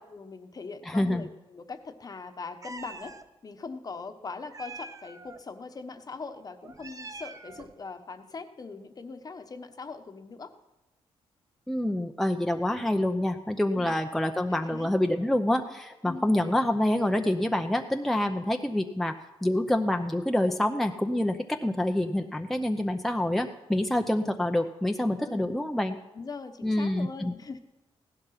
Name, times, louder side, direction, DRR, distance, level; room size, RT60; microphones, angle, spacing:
voice 1, 0.1-3.1 3.4-10.5 13.7-14.0 14.5-14.9 16.0-16.4 25.2-25.6 26.1-27.6, left 4 dB, 35° left, 8 dB, 1.1 m, -41 dB
voice 2, 0.9-1.3 11.7-19.1 19.4-26.0 26.6-27.3, left 1 dB, ahead, 5 dB, 0.7 m, -27 dB
Meow, 2.6-3.3 4.5-5.4 6.6-7.8, right 3 dB, 30° right, 0.8 m, -44 dB
15.5 x 11.5 x 5.8 m, 1.0 s
cardioid pair, 90°, 11 cm